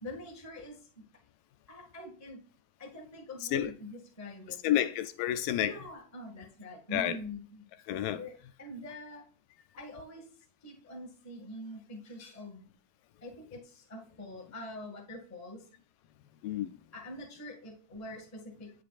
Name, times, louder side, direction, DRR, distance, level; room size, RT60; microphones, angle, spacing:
voice 1, 0.0-1.0 1.7-2.4 2.8-4.8 5.6-9.3 9.8-10.3 10.6-12.7 13.2-15.6 16.9-18.7, left 1 dB, 15° left, 0.5 m, -45 dB
voice 2, 4.6-5.7 6.9-7.2 7.9-8.2 16.4-16.7, left 12 dB, 80° left, 2.0 m, -30 dB
9.4 x 6.8 x 2.4 m
omnidirectional pair, 4.2 m